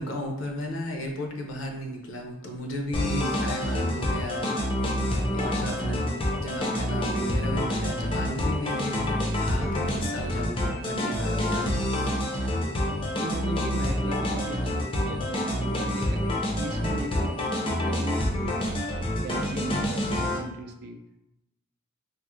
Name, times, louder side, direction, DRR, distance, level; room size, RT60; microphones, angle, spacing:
voice 1, 0.0-4.5 5.3-11.7, left 1 dB, 65° left, 2 dB, 0.6 m, -34 dB
sound 1, 2.9-20.4, left 1 dB, 25° left, 0.4 m, -27 dB
voice 2, 13.1-18.8 19.2-21.0, right 2 dB, 50° right, 5 dB, 0.3 m, -38 dB
3.5 x 2.0 x 3.0 m, 0.89 s
head